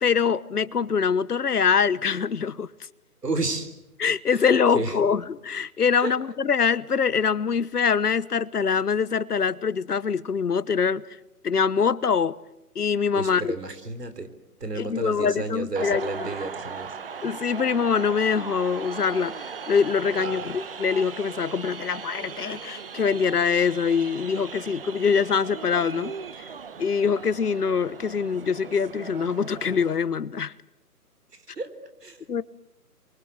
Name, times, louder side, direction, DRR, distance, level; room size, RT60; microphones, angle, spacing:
voice 1, 0.0-2.7 4.0-11.0 11.4-12.4 12.7-13.5 14.8-16.3 17.2-26.5 26.8-30.5 32.3-32.4, left 6 dB, 70° left, 1.2 m, -24 dB
voice 2, 3.2-3.7 4.3-5.0 5.9-6.2 13.2-14.3 14.6-17.0 20.2-20.5 31.5-32.4, right 3 dB, 80° right, 4.1 m, -32 dB
sound 1, 15.8-30.0, right 6 dB, 35° right, 1.2 m, -38 dB
27.5 x 23.5 x 8.0 m
figure-of-eight pair, 155°, 47 cm